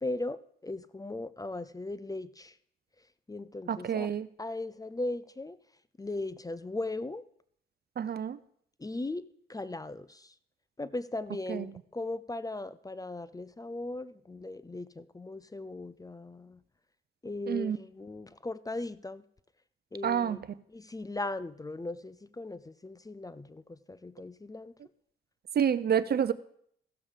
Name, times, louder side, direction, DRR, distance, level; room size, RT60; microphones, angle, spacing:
voice 1, 0.0-2.5 3.3-4.1 4.4-5.6 6.0-7.2 8.8-10.3 10.8-16.6 17.2-19.2 19.9-20.4 20.7-24.7, left 2 dB, 20° left, 16 dB, 0.6 m, -38 dB
voice 2, 3.7-4.3 8.0-8.4 11.5-11.7 17.5-17.8 20.0-20.4 25.5-26.3, right 8 dB, 55° right, 16 dB, 0.7 m, -28 dB
15.5 x 7.1 x 5.0 m, 0.65 s
supercardioid pair, 60°, 20 cm